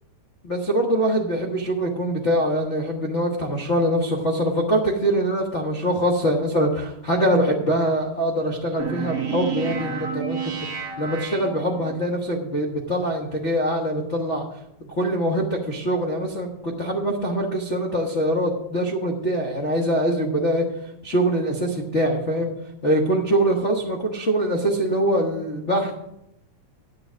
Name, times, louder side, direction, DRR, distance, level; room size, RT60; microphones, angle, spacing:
voice 1, 0.4-10.5 11.0-14.4 14.8-20.6 21.0-22.5 22.8-25.9, right 1 dB, 75° left, 0 dB, 0.6 m, -23 dB
sound 1, 8.8-12.1, right 7 dB, 45° right, 1.1 m, -30 dB
9.7 x 8.4 x 6.1 m, 0.83 s
omnidirectional pair, 3.4 m